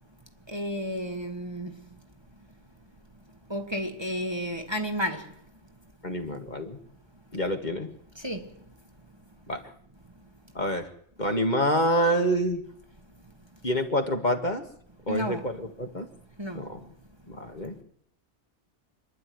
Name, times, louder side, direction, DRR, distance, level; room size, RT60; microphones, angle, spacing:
voice 1, 0.5-1.7 3.5-5.3 8.2-8.5 15.1-15.5 16.4-16.6, equal, 20° right, 1.6 m, -32 dB
voice 2, 6.0-6.8 7.3-7.9 9.5-9.6 10.6-10.9 11.2-12.6 13.6-14.6 15.1-16.1 16.5-16.8 17.3-17.8, equal, 40° left, 2.0 m, -27 dB
26.5 x 11.0 x 9.5 m
omnidirectional pair, 1.2 m